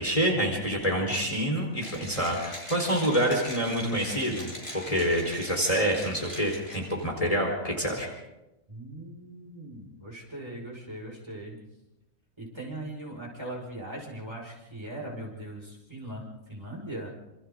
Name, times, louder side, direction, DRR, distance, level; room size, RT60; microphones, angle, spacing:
voice 1, 0.0-8.1, equal, 25° left, 0 dB, 4.7 m, -27 dB
Mechanisms, 1.8-7.0, equal, 50° left, 7.1 m, -42 dB
voice 2, 8.7-11.6 12.4-17.1, right 1 dB, 20° right, -2 dB, 5.9 m, -40 dB
28.5 x 28.0 x 3.9 m, 0.96 s
omnidirectional pair, 1.4 m